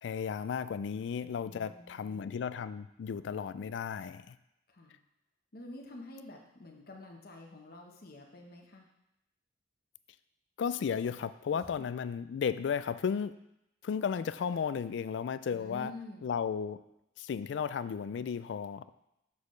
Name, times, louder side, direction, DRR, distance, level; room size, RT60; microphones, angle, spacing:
voice 1, 0.0-4.4 10.6-13.3 13.8-15.9 16.2-16.8 17.2-19.0, left 7 dB, 70° left, 15 dB, 0.3 m, -34 dB
voice 2, 1.4-2.4 4.7-5.0 5.5-8.9 11.5-11.7 15.5-16.2, left 1 dB, 50° left, 1 dB, 1.0 m, -48 dB
7.2 x 6.4 x 3.2 m, 0.85 s
head